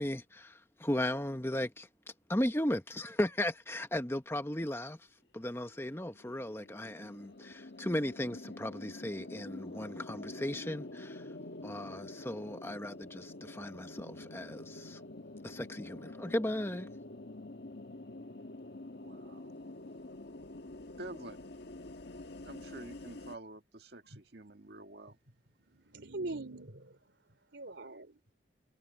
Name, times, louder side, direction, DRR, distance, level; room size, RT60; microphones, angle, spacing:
voice 1, 0.0-1.9 2.3-5.0 5.3-11.2 11.6-15.0 15.4-16.9, left 1 dB, 15° left, 1.0 m, -36 dB
sound 1, 5.6-23.4, left 2 dB, 70° left, 1.6 m, -47 dB
voice 2, 19.0-19.6 21.0-21.4 22.4-25.2, right 2 dB, 65° right, 1.7 m, -48 dB
voice 3, 25.7-27.0 27.5-28.2, right 2 dB, 85° right, 3.5 m, -42 dB
head